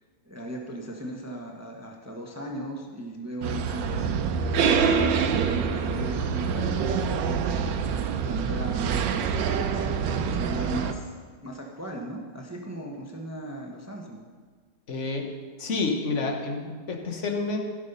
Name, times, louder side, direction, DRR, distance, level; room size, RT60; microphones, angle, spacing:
voice 1, 0.2-4.0 4.5-6.9 7.2-7.8 8.2-9.7 10.2-11.1 11.4-14.2, right 1 dB, 10° right, 0 dB, 0.7 m, -37 dB
sound 1, 3.4-10.9, right 6 dB, 75° right, 1.4 m, -26 dB
voice 2, 14.9-15.3 15.6-17.6, left 3 dB, 45° left, 3 dB, 1.3 m, -29 dB
16.0 x 6.3 x 5.5 m, 1.5 s
omnidirectional pair, 2.1 m